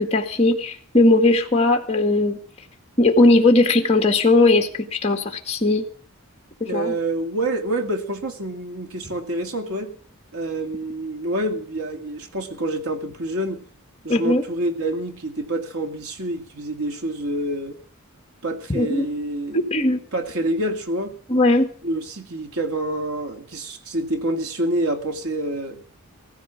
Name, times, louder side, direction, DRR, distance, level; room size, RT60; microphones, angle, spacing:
voice 1, 0.0-2.4 3.0-5.9 6.7-7.0 14.1-14.4 18.7-19.1 19.7-20.0 21.3-21.7, left 2 dB, 30° left, 4 dB, 2.0 m, -18 dB
voice 2, 6.6-10.0 10.3-13.6 14.0-17.8 18.4-19.8 20.1-21.2 21.8-25.8, right 1 dB, 75° right, 6 dB, 2.3 m, -27 dB
16.0 x 14.5 x 6.0 m, 0.43 s
head